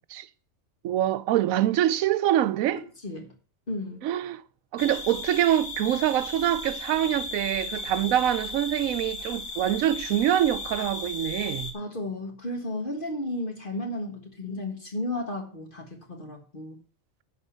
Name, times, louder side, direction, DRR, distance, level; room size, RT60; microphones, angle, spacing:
voice 1, 0.8-2.8 4.0-4.4 4.7-11.7, right 12 dB, 90° right, 1.0 m, -25 dB
voice 2, 3.7-4.0 8.0-8.1 11.7-16.8, left 1 dB, 40° left, 1.8 m, -33 dB
sound 1, 4.8-11.7, left 3 dB, 85° left, 2.0 m, -36 dB
11.0 x 4.2 x 7.2 m
omnidirectional pair, 1.4 m